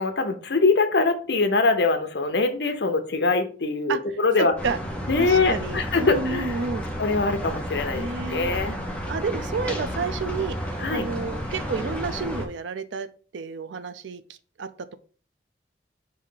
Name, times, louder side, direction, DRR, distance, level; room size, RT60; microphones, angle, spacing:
voice 1, 0.0-4.5 5.1-6.6 7.0-8.8 10.8-11.0, left 3 dB, 65° left, 8 dB, 0.7 m, -23 dB
voice 2, 4.4-4.8 5.2-6.8 7.9-8.5 9.1-13.1 13.3-14.2 14.6-15.0, right 4 dB, 85° right, 12 dB, 0.4 m, -30 dB
sound 1, 4.6-12.5, equal, 5° left, 0.6 m, -32 dB
5.0 x 2.7 x 3.8 m, 0.40 s
head